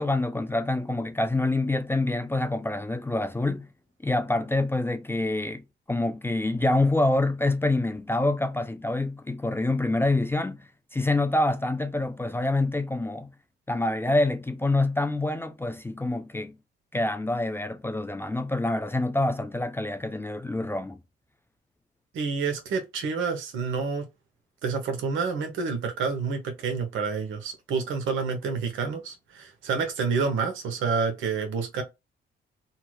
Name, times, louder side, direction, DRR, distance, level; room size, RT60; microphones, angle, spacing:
voice 1, 0.0-3.7 4.0-5.6 5.9-13.3 13.7-16.5 16.9-21.0, left 2 dB, 10° left, 0.4 m, -26 dB
voice 2, 22.1-24.1 24.6-31.8, right 5 dB, 80° right, 0.9 m, -28 dB
2.8 x 2.3 x 3.0 m
cardioid pair, 90°, 20 cm